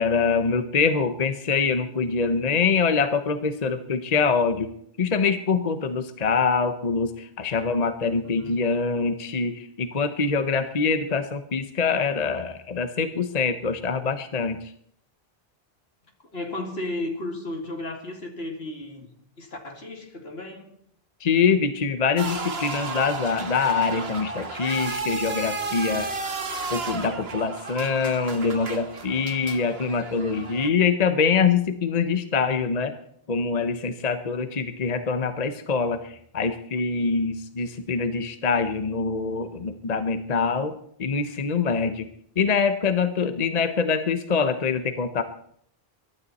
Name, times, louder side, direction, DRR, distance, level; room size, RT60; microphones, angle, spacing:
voice 1, 0.0-4.7 5.0-14.6 21.2-26.1 26.7-32.9 33.3-42.1 42.4-45.2, left 5 dB, 40° left, 1.0 m, -24 dB
voice 2, 8.2-8.6 16.3-19.1 19.4-20.7, left 2 dB, 80° left, 2.7 m, -34 dB
sound 1, 22.2-30.7, right 3 dB, 80° right, 1.8 m, -33 dB
23.0 x 12.0 x 4.2 m
omnidirectional pair, 1.0 m